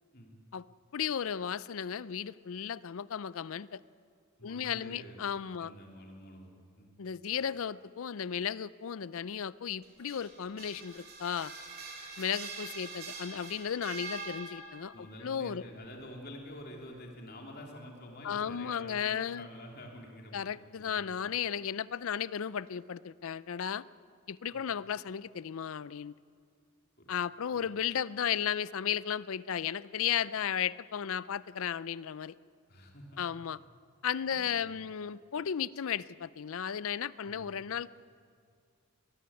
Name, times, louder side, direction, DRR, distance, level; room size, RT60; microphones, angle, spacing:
voice 1, 0.9-3.8 4.4-5.7 7.0-11.5 12.2-15.6 18.2-19.5 20.3-23.8 24.3-26.2 27.1-32.3 33.2-33.6 34.0-37.9, left 8 dB, 65° left, 19 dB, 0.4 m, -35 dB
voice 2, 4.4-5.2 5.6-7.0 14.9-21.1 24.5-24.6 27.0-27.1 27.5-27.6 32.7-33.2 34.3-34.7 37.2-37.6, left 1 dB, 45° left, 0 dB, 3.2 m, -48 dB
sound 1, 9.8-15.0, right 4 dB, 45° right, 3.0 m, -44 dB
21.5 x 15.0 x 9.7 m, 2.2 s
head